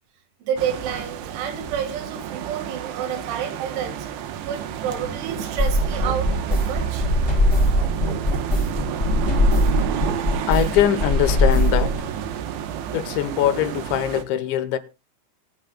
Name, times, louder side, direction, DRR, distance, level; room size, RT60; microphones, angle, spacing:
voice 1, 0.4-4.1 4.5-7.1, right 8 dB, 90° right, 4.3 m, -29 dB
sound 1, 0.6-14.2, right 10 dB, 70° right, 3.0 m, -30 dB
sound 2, 5.6-11.9, left 1 dB, 15° left, 1.9 m, -21 dB
voice 2, 10.5-12.0 12.9-14.8, left 11 dB, 80° left, 3.2 m, -22 dB
24.5 x 9.1 x 2.3 m
omnidirectional pair, 5.3 m